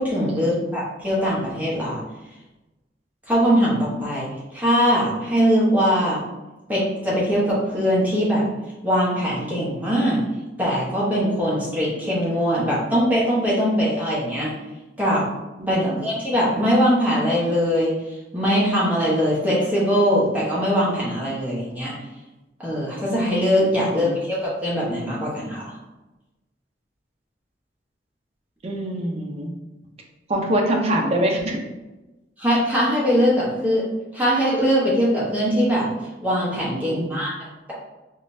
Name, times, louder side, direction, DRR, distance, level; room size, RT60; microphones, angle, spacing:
voice 1, 0.0-2.0 3.3-4.3 4.5-6.2 6.7-8.4 8.8-10.2 10.6-14.5 15.0-15.2 15.7-17.9 18.3-21.9 22.6-25.7 32.4-33.8 34.1-35.9 36.2-37.3, equal, 10° right, -7 dB, 1.0 m, -21 dB
voice 2, 15.6-16.0 23.8-24.2 28.6-29.5 30.3-31.6 36.8-37.2, right 1 dB, 35° right, 0 dB, 0.6 m, -25 dB
3.7 x 3.2 x 2.6 m, 1.1 s
head